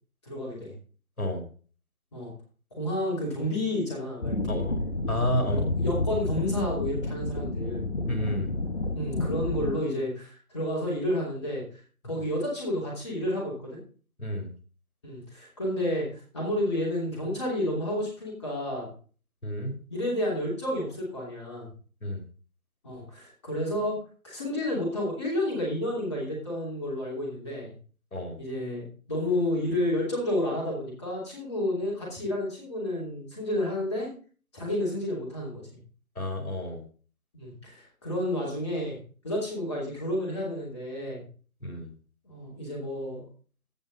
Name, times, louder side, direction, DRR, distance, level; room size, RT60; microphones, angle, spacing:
voice 1, 0.2-0.7 2.1-2.3 2.8-4.6 5.4-7.8 8.9-11.6 12.0-13.8 15.0-18.9 19.9-21.7 22.8-27.8 28.4-34.1 34.5-35.7 37.3-39.0 39.2-41.3 42.2-43.2, left 1 dB, 20° left, -4 dB, 2.9 m, -31 dB
sound 1, 4.2-9.7, left 2 dB, 45° left, 1.3 m, -30 dB
voice 2, 4.5-4.8 5.1-5.7 8.1-8.5 14.2-14.5 19.4-19.8 22.0-22.2 28.1-28.4 36.2-36.8 41.6-41.9, left 1 dB, 75° left, 4 dB, 2.9 m, -30 dB
16.0 x 5.4 x 4.0 m, 0.40 s
figure-of-eight pair, 165°, 44 cm